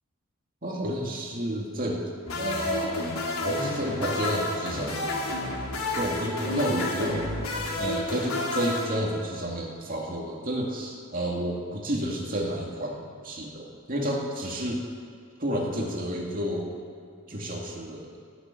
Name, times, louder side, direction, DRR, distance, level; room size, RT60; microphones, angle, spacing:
voice 1, 0.6-2.0 2.4-3.1 3.4-5.2 5.9-7.3 7.8-14.8 15.4-16.7 17.3-18.1, equal, 40° right, -1 dB, 2.3 m, -30 dB
sound 1, 2.3-9.6, left 2 dB, 80° left, 2.8 m, -30 dB
18.0 x 7.2 x 9.2 m, 2.3 s
head